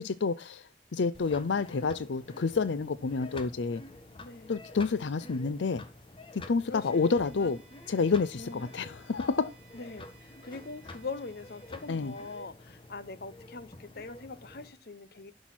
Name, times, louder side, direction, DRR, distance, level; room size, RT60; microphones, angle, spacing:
voice 1, 0.0-3.8 4.5-5.8 6.3-7.6 7.9-9.5 11.9-12.1, left 4 dB, 90° left, 0.5 m, -29 dB
sound 1, 1.1-14.7, left 2 dB, 30° left, 1.3 m, -49 dB
voice 2, 4.2-4.5 6.7-7.6 8.4-8.6 9.7-15.3, left 3 dB, 60° left, 0.9 m, -42 dB
Bowed string instrument, 6.7-12.5, right 5 dB, 5° right, 2.8 m, -61 dB
11.5 x 6.3 x 6.0 m
head